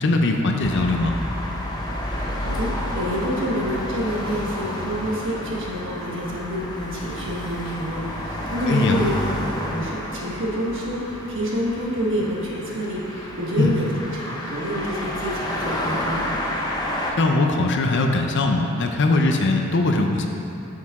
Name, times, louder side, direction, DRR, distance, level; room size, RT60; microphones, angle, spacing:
voice 1, 0.0-1.1 8.7-9.0 13.6-13.7 17.2-20.3, left 2 dB, 55° left, 3 dB, 0.6 m, -20 dB
sound 1, 0.6-17.1, left 1 dB, 20° left, 0.7 m, -30 dB
voice 2, 2.1-9.1 9.5-16.3, equal, 60° right, -4 dB, 1.4 m, -28 dB
8.3 x 6.5 x 3.6 m, 2.9 s
head